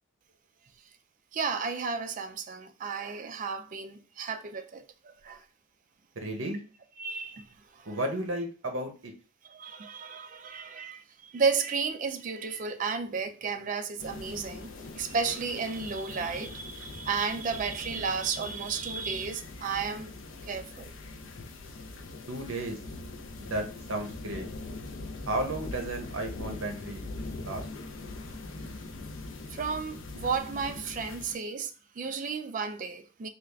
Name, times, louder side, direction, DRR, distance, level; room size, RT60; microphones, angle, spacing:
voice 1, 1.3-5.4 7.0-7.5 7.7-8.0 9.4-20.1 20.4-20.9 29.5-33.3, right 5 dB, 35° right, 0.3 m, -33 dB
voice 2, 6.2-6.6 7.9-9.1 22.3-22.8 23.4-24.4 25.2-27.1 27.4-27.7, right 1 dB, 65° right, 0.8 m, -33 dB
sound 1, 14.0-31.4, left 2 dB, 60° left, 0.5 m, -42 dB
3.4 x 2.4 x 3.3 m
head